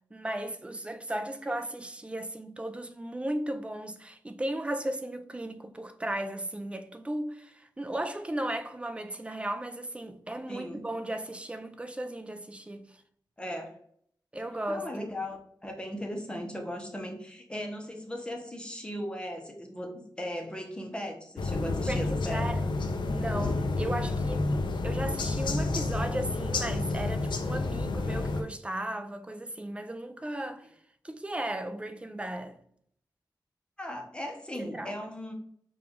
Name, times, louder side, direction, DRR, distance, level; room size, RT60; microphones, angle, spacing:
voice 1, 0.1-12.9 14.3-15.1 21.9-22.6 23.0-24.5 24.8-30.7 31.0-32.6 34.6-34.9, right 1 dB, 15° right, 0.4 m, -35 dB
voice 2, 10.5-10.8 13.4-13.7 14.7-22.6 33.8-35.3, equal, 10° left, 0.8 m, -37 dB
sound 1, 21.4-28.4, left 3 dB, 85° left, 0.5 m, -30 dB
4.9 x 2.4 x 3.5 m
wide cardioid pair, 125°, 8 cm